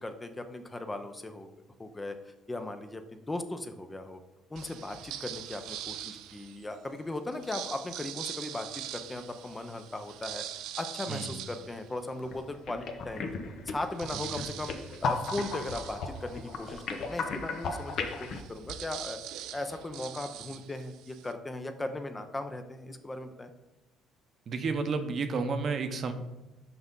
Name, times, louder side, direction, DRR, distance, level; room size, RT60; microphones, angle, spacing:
voice 1, 0.0-1.5 1.8-4.2 4.5-13.3 13.7-19.2 19.5-23.5, left 2 dB, 15° left, 8 dB, 0.6 m, -38 dB
sound 1, 4.5-6.7 7.3-12.5 13.0-13.1 13.3-21.3, right 11 dB, 85° right, 0.5 m, -43 dB
sound 2, 12.2-12.4 12.7-18.4, left 4 dB, 60° left, 0.8 m, -35 dB
voice 2, 24.5-26.1, right 4 dB, 45° right, 7 dB, 0.8 m, -31 dB
5.9 x 5.3 x 3.7 m, 1.0 s
cardioid pair, 110°, 0 cm